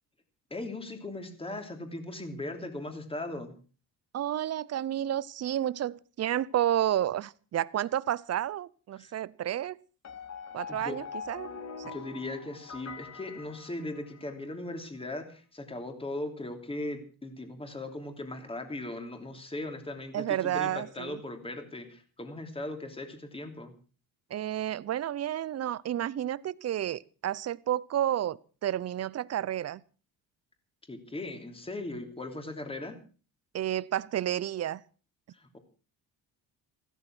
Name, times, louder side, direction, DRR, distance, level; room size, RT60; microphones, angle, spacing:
voice 1, 0.5-3.5 8.9-9.1 10.7-11.0 11.8-23.7 30.9-33.0 35.3-35.6, left 2 dB, 15° left, 3.1 m, -38 dB
voice 2, 4.1-9.8 10.5-11.5 20.1-21.2 24.3-29.8 33.5-34.8, right 11 dB, 40° right, 0.7 m, -31 dB
sound 1, 10.0-14.4, left 6 dB, 45° left, 2.2 m, -43 dB
15.0 x 13.0 x 6.1 m
cardioid pair, 120°, 37 cm